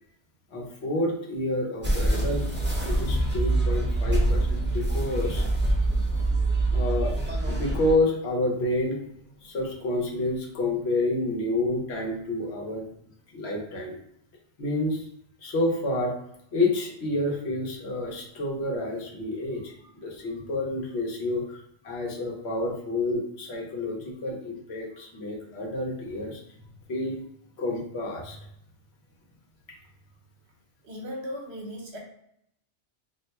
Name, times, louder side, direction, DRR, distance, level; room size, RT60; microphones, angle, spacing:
voice 1, 0.5-2.5 2.8-5.5 6.7-7.1 7.4-9.0 9.4-12.9 13.3-13.9 14.6-15.1 15.4-16.1 16.5-21.6 21.8-26.4 26.9-27.2 27.6-28.4 29.7-29.8, left 2 dB, 65° left, -1 dB, 1.1 m, -29 dB
sound 1, 1.8-7.9, right 2 dB, 10° right, 0.6 m, -25 dB
voice 2, 30.8-32.0, equal, 70° right, -1 dB, 1.1 m, -37 dB
2.6 x 2.2 x 4.1 m, 0.75 s
omnidirectional pair, 1.2 m